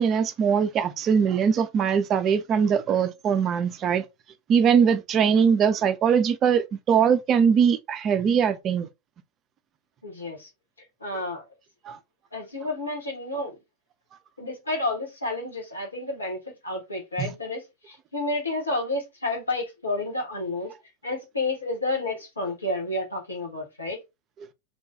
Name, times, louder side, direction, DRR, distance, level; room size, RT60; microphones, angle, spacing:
voice 1, 0.0-4.0 4.5-8.9 11.9-12.0 17.2-17.3, right 7 dB, 30° right, 0.4 m, -21 dB
voice 2, 10.0-10.5 11.0-11.4 12.3-13.6 14.4-20.7 21.0-24.0, left 2 dB, 75° left, 1.2 m, -30 dB
2.9 x 2.2 x 2.6 m
figure-of-eight pair, 90°, 0 cm